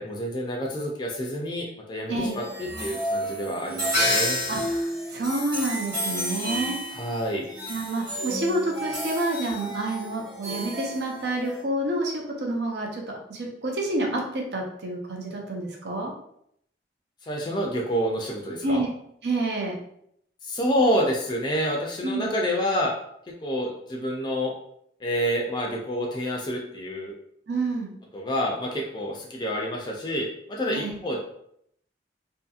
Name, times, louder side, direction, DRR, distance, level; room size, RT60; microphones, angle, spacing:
voice 1, 0.0-4.4 6.9-7.5 17.2-18.8 20.4-22.9 23.4-24.5 25.0-27.1 28.1-31.2, equal, 25° left, -1 dB, 0.4 m, -28 dB
sound 1, 2.1-11.6, equal, 25° right, 1.1 m, -30 dB
voice 2, 4.5-6.7 7.7-16.1 18.6-18.9 19.2-19.8 22.0-22.3 27.5-27.9 30.7-30.9, right 2 dB, 70° right, 0 dB, 0.6 m, -28 dB
2.7 x 2.6 x 2.4 m, 0.71 s
head